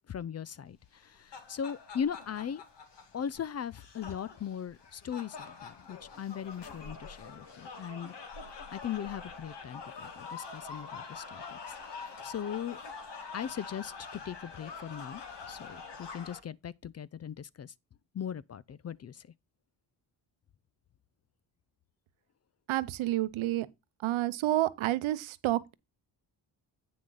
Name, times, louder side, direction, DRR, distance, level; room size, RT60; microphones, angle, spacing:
voice 1, 0.1-2.6 3.1-8.1 8.7-12.8 13.3-17.7 18.1-19.3, left 8 dB, 35° left, 0.4 m, -39 dB
sound 1, 0.9-16.4, left 5 dB, 60° left, 2.0 m, -45 dB
voice 2, 22.7-23.7 24.0-25.7, right 15 dB, 85° right, 0.8 m, -29 dB
8.8 x 6.2 x 4.0 m
cardioid pair, 80°, 47 cm